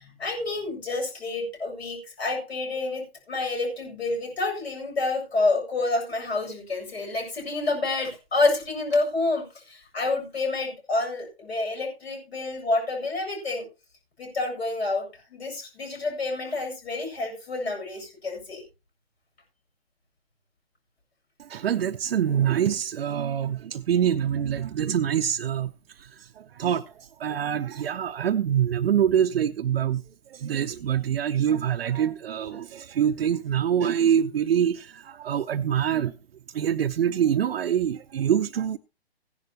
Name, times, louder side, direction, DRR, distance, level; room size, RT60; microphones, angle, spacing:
voice 1, 0.0-13.7 14.2-18.6, left 2 dB, 75° left, 7.8 m, -28 dB
voice 2, 21.5-25.7 26.6-26.8 27.2-30.0 30.3-36.1 36.5-38.8, right 9 dB, 65° right, 0.7 m, -25 dB
16.0 x 11.0 x 2.9 m
hypercardioid pair, 135°, 32 cm